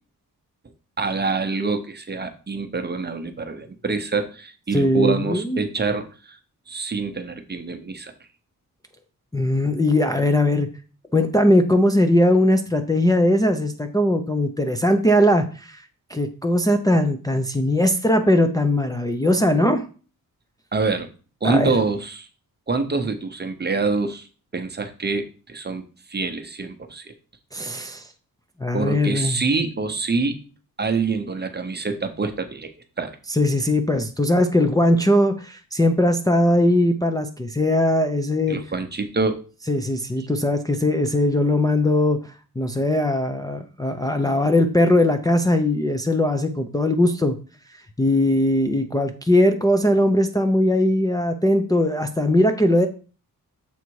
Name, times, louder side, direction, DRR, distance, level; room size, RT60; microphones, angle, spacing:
voice 1, 1.0-6.4 6.7-8.1 20.7-21.1 21.4-22.3 22.7-24.3 24.5-25.8 26.1-27.1 28.7-30.4 30.8-32.7 33.0-33.1 38.5-39.4 40.2-40.3, right 4 dB, 30° right, 7 dB, 0.8 m, -26 dB
voice 2, 4.7-5.6 9.3-10.7 11.1-19.8 21.4-21.8 27.5-28.1 28.6-29.4 33.3-38.6 39.7-47.4 47.7-52.9, left 1 dB, 10° left, 4 dB, 0.5 m, -20 dB
7.1 x 3.9 x 4.7 m, 0.36 s
wide cardioid pair, 140°, 35 cm